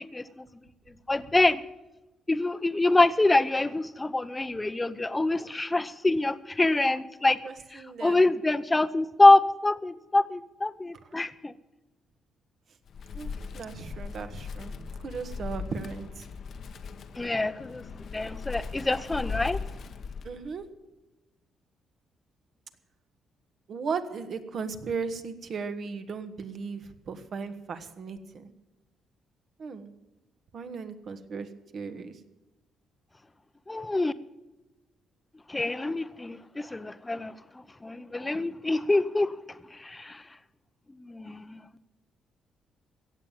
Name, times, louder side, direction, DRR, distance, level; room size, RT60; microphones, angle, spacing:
voice 1, 0.1-0.5 1.1-1.6 2.3-7.4 8.0-11.5 17.2-17.8 18.1-19.6 33.7-34.1 35.5-37.3 37.8-39.3 39.8-40.2 41.0-41.6, left 2 dB, 15° left, 0.8 m, -25 dB
voice 2, 7.4-8.2 13.1-14.7 15.0-16.2 20.2-20.6 23.7-28.5 29.6-29.9 30.5-31.5 31.7-32.1, right 5 dB, 55° right, 1.4 m, -36 dB
Wind, 12.9-20.6, left 5 dB, 60° left, 1.0 m, -39 dB
16.5 x 7.5 x 8.9 m
cardioid pair, 90°, 0 cm